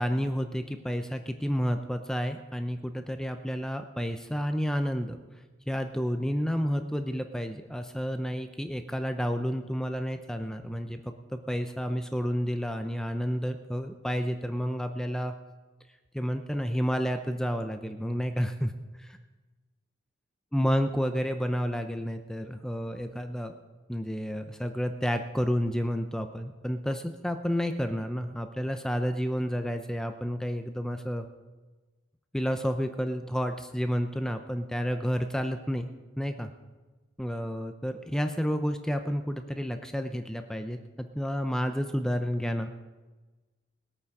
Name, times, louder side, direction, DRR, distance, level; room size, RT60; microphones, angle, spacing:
voice 1, 0.0-5.2 5.7-15.3 16.1-18.7 20.5-23.6 23.9-31.2 32.3-35.9 36.2-36.5 37.2-42.7, equal, 5° left, 7 dB, 0.6 m, -30 dB
20.5 x 8.7 x 4.8 m, 1.2 s
head